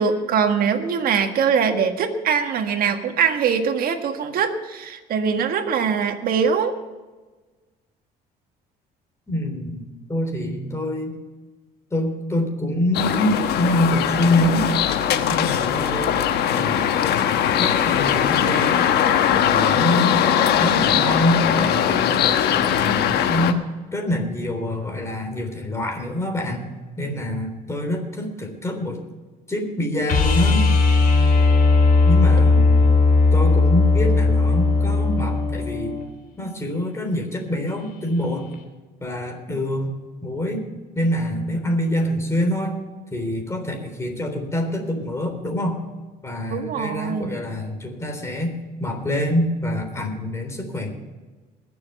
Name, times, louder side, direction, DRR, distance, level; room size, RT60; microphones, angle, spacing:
voice 1, 0.0-6.7 46.5-47.4, right 6 dB, 60° right, 6 dB, 1.7 m, -22 dB
voice 2, 9.3-9.8 10.1-11.2 11.9-14.7 15.3-16.1 16.5-16.9 17.6-18.9 19.3-22.4 22.7-23.6 23.9-26.7 27.0-29.0 29.5-30.6 32.1-32.8 33.3-36.0 36.4-38.4 39.0-40.0 40.2-40.6 41.0-42.8 43.1-45.8 46.2-48.5 48.8-50.9, left 1 dB, 15° left, 3 dB, 3.5 m, -25 dB
sound 1, 12.9-23.5, left 9 dB, 75° left, 1.1 m, -20 dB
sound 2, 30.1-36.0 38.5-38.6, left 3 dB, 60° left, 4.1 m, -17 dB
21.0 x 7.1 x 5.6 m, 1.3 s
cardioid pair, 110°, 17 cm